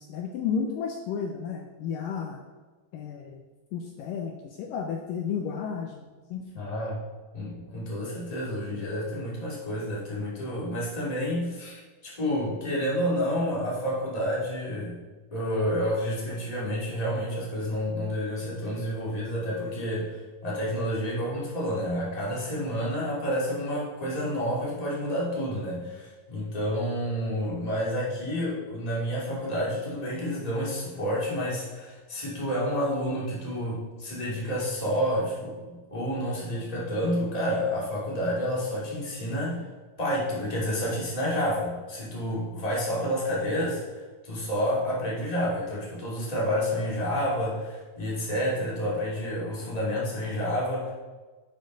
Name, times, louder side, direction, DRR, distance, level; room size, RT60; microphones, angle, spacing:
voice 1, 0.0-2.4 2.9-3.4 3.7-6.7, left 6 dB, 75° left, 2 dB, 2.2 m, -33 dB
voice 2, 6.6-7.0 7.3-15.0 15.3-39.6 40.0-50.9, equal, 10° left, -5 dB, 2.1 m, -29 dB
11.0 x 6.6 x 4.0 m, 1.3 s
omnidirectional pair, 4.2 m